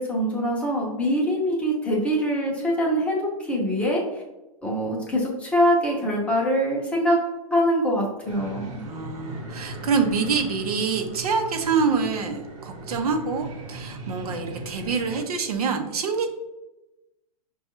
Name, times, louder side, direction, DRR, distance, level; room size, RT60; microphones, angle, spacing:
voice 1, 0.0-4.0 4.6-7.2 7.5-8.8, equal, 5° left, -3 dB, 0.6 m, -23 dB
sound 1, 8.3-15.2, right 2 dB, 55° right, 0.9 m, -38 dB
voice 2, 8.8-16.3, right 5 dB, 80° right, 6 dB, 0.7 m, -26 dB
5.3 x 2.3 x 2.9 m, 1.0 s
hypercardioid pair, 150°, 19 cm